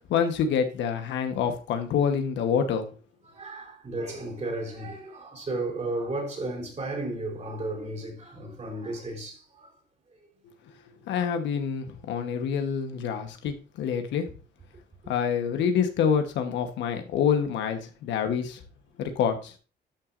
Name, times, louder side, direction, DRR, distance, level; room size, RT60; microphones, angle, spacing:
voice 1, 0.1-2.9 11.1-14.3 15.1-18.6 19.0-19.6, left 7 dB, 90° left, 1.2 m, -27 dB
voice 2, 3.2-9.7 15.0-15.1, right 2 dB, 40° right, 4.2 m, -34 dB
11.5 x 5.9 x 2.6 m
cardioid pair, 85°, 18 cm